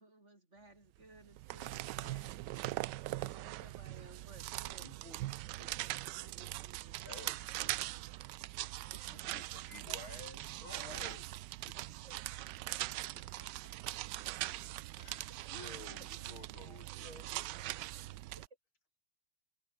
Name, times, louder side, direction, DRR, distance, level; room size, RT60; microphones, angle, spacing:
voice 1, 0.0-2.8 3.2-5.4 6.1-7.6 8.9-9.1 12.0-12.3 12.7-12.8 15.4-15.6 18.3-18.4, right 2 dB, 35° right, 5.6 m, -59 dB
sound 1, 1.2-18.5, right 16 dB, 75° right, 1.1 m, -41 dB
voice 2, 4.8-5.2 5.5-5.8 7.0-8.0 9.1-11.3 15.0-17.6, left 2 dB, 80° left, 7.8 m, -53 dB
voice 3, 12.4-14.6 17.1-17.9, equal, 10° left, 6.9 m, -67 dB
omnidirectional pair, 2.2 m